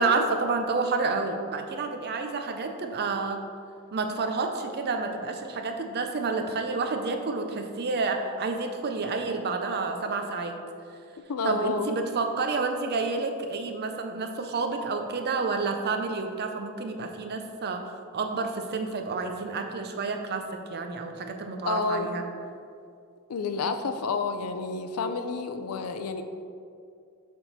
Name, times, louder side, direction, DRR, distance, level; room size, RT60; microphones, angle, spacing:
voice 1, 0.0-3.4 3.9-10.5 11.4-20.4 20.7-22.2, right 3 dB, 50° right, 5 dB, 0.6 m, -29 dB
voice 2, 11.3-11.9 21.6-22.1 23.3-26.2, left 4 dB, 85° left, 8 dB, 0.5 m, -29 dB
7.2 x 3.6 x 4.0 m, 2.4 s
head